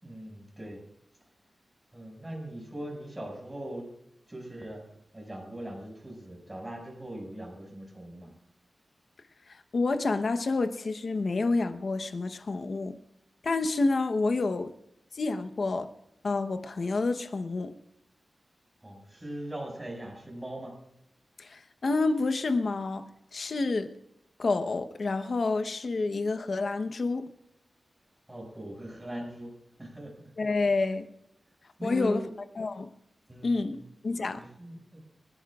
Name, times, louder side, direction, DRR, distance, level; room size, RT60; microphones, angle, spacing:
voice 1, 0.0-0.8 1.9-3.9 4.3-4.8 5.1-8.3 18.8-20.7 28.3-29.5 29.8-30.3 31.8-32.3 33.3-33.8 34.4-35.0, right 1 dB, 15° right, 6.1 m, -40 dB
voice 2, 9.5-13.0 13.4-14.7 15.1-15.9 16.2-17.7 21.4-23.9 24.4-27.3 30.4-31.1 31.8-32.2 32.6-32.9 33.4-33.8 34.0-34.4, left 3 dB, 55° left, 1.0 m, -28 dB
27.5 x 11.0 x 2.4 m
wide cardioid pair, 110°, 0 cm